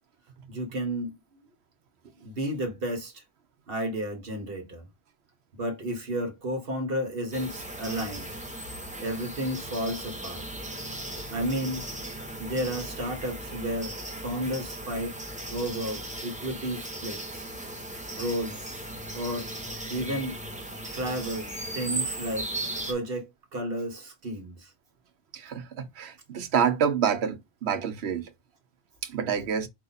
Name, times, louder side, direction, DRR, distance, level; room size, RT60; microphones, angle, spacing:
voice 1, 0.5-1.4 2.2-3.2 3.7-4.8 5.6-8.3 9.0-10.5 11.3-11.9 12.1-13.9 14.2-15.2 15.5-17.5 18.1-18.7 19.1-19.5 19.9-20.4 20.8-22.5 22.9-24.7, equal, 65° right, 1.4 m, -32 dB
sound 1, 7.3-22.9, right 1 dB, 10° right, 0.8 m, -37 dB
voice 2, 25.3-28.3 29.0-29.7, right 7 dB, 90° right, 1.0 m, -27 dB
4.7 x 2.7 x 4.0 m
omnidirectional pair, 1.0 m